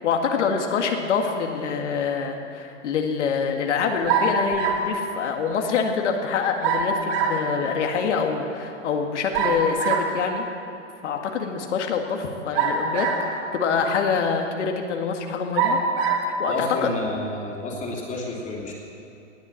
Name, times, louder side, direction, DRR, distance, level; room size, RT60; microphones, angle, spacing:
voice 1, 0.0-10.4 11.0-15.8 16.4-16.9, left 6 dB, 65° left, 3 dB, 2.0 m, -25 dB
sound 1, 4.1-4.9 6.6-7.4 9.3-10.1 12.5-13.4 14.1-14.2 15.5-16.3, right 5 dB, 50° right, 3.3 m, -23 dB
voice 2, 16.5-18.7, left 2 dB, 20° left, -2 dB, 2.9 m, -30 dB
19.0 x 8.5 x 7.6 m, 2.9 s
hypercardioid pair, 130°, 37 cm